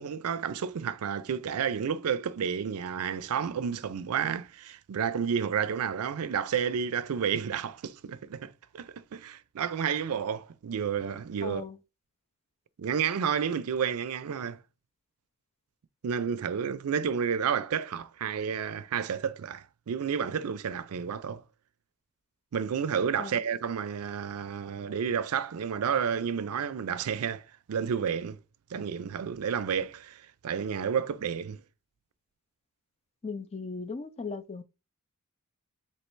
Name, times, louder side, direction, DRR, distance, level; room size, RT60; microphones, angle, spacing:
voice 1, 0.0-11.6 12.8-14.6 16.0-21.4 22.5-28.4 28.7-31.6, right 7 dB, 80° right, 0.4 m, -31 dB
voice 2, 11.4-11.7 23.2-23.3 33.2-34.6, left 4 dB, 30° left, 0.4 m, -37 dB
3.2 x 2.9 x 4.5 m
head